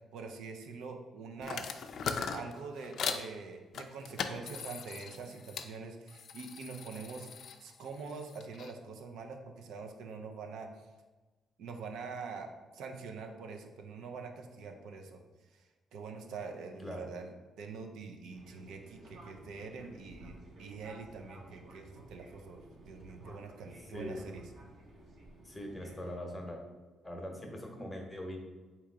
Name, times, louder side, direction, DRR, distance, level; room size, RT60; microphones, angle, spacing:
voice 1, 0.1-1.7 2.3-7.3 7.6-10.7 11.6-15.2 15.5-22.6 22.9-24.4, right 4 dB, 80° right, 3 dB, 0.5 m, -45 dB
sound 1, 1.4-3.3 3.7-5.7 6.1-8.7, left 6 dB, 65° left, 0.3 m, -40 dB
voice 2, 16.8-17.1 23.9-24.2 25.4-26.6 27.0-28.4, left 1 dB, 15° left, 2 dB, 0.8 m, -41 dB
Fixed-wing aircraft airplane, 18.3-26.2, right 1 dB, 60° right, 0.9 m, -54 dB
3.6 x 2.9 x 4.5 m, 1.2 s
cardioid pair, 90°, 0 cm